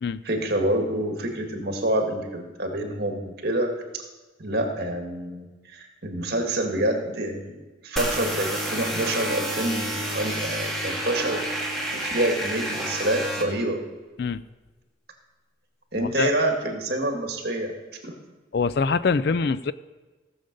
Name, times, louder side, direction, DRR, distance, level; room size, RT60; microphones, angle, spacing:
voice 1, 0.2-3.7 4.4-5.5 5.7-11.4 11.9-13.8 15.9-17.7 18.0-18.1, right 1 dB, 55° right, 3 dB, 1.9 m, -27 dB
sound 1, 8.0-13.4, right 1 dB, ahead, 1.7 m, -29 dB
voice 2, 15.9-16.3 18.5-19.7, left 4 dB, 55° left, 15 dB, 0.4 m, -24 dB
16.5 x 7.0 x 5.2 m, 1.2 s
head